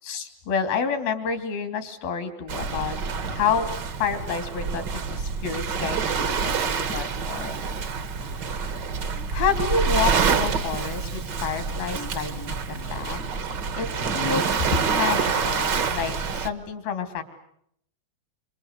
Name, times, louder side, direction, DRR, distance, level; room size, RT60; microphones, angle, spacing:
voice 1, 0.0-3.0 3.3-3.7 4.0-7.6 8.5-8.9 9.3-13.2 13.8-14.5 14.8-17.2, left 6 dB, 85° left, 8 dB, 4.7 m, -29 dB
Waves surf, 2.5-16.5, right 5 dB, 65° right, 1.0 m, -27 dB
27.5 x 26.5 x 8.1 m, 0.72 s
omnidirectional pair, 4.1 m